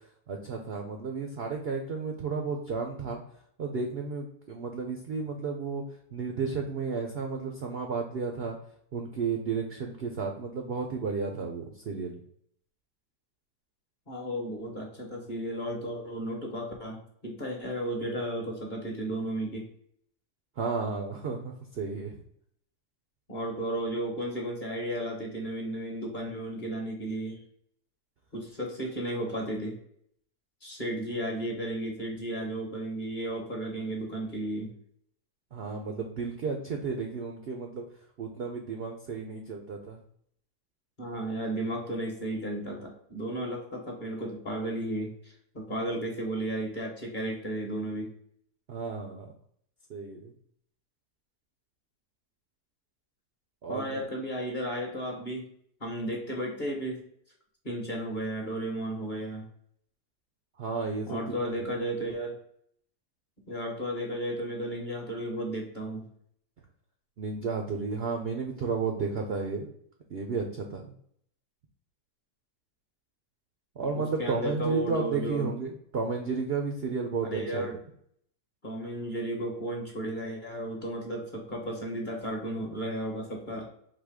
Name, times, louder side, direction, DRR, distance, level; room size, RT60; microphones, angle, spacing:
voice 1, 0.3-3.2 3.6-5.8 6.1-8.6 8.9-12.2 20.6-22.2 35.5-37.9 38.2-40.0 48.7-49.3 49.9-50.3 53.6-54.0 60.6-61.2 61.6-61.7 67.2-69.7 70.1-70.8 73.8-77.7, right 4 dB, 65° right, 3 dB, 0.6 m, -32 dB
voice 2, 14.1-19.6 23.3-27.4 28.3-29.8 30.6-34.7 41.0-48.1 53.7-55.5 55.8-57.0 57.6-59.5 61.1-62.3 63.5-66.1 74.0-75.5 77.2-77.8 78.6-83.7, right 1 dB, 35° left, 0 dB, 1.0 m, -34 dB
3.9 x 2.8 x 4.8 m, 0.67 s
omnidirectional pair, 1.8 m